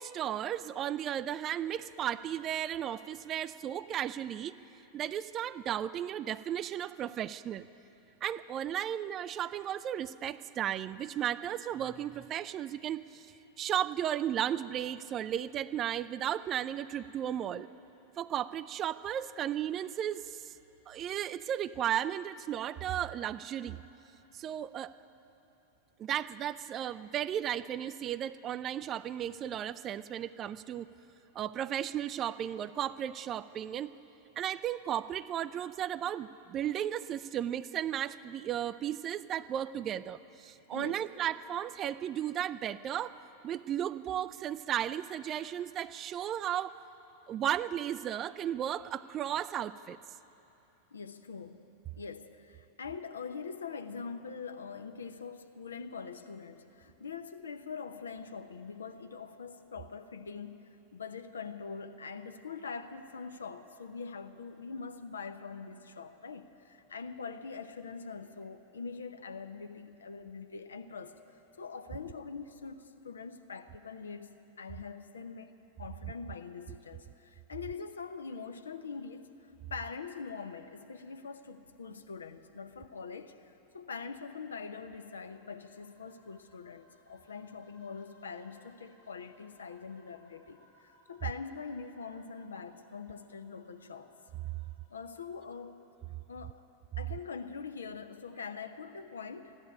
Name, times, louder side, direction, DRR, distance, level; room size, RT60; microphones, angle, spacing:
voice 1, 0.0-4.5 4.9-7.7 8.2-13.3 13.6-17.7 18.2-20.5 20.9-23.8 24.3-25.0 26.0-30.9 31.3-33.9 34.4-43.1 43.4-46.8 47.3-50.0, right 10 dB, 30° right, 15 dB, 0.4 m, -35 dB
voice 2, 40.7-41.0 50.9-51.6 52.0-71.2 71.6-74.3 74.6-75.5 75.8-94.1 94.9-95.8 96.3-96.6 97.0-99.6, left 5 dB, 70° left, 8 dB, 0.7 m, -43 dB
sound 1, 84.8-95.6, left 1 dB, 55° left, 3.9 m, -67 dB
14.5 x 11.0 x 8.6 m, 2.9 s
figure-of-eight pair, 90°, 0 cm